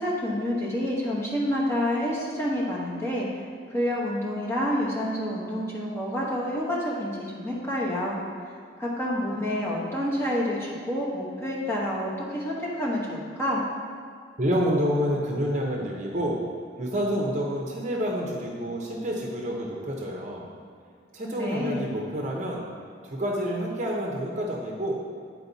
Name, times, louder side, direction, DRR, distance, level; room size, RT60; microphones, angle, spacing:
voice 1, 0.0-3.4 3.7-8.2 8.8-13.6 21.4-21.8, equal, 15° left, -6 dB, 1.1 m, -28 dB
voice 2, 14.4-16.4 16.8-20.5 21.1-22.7 23.0-24.9, equal, 40° right, -2 dB, 0.8 m, -28 dB
8.7 x 4.6 x 4.0 m, 2.2 s
head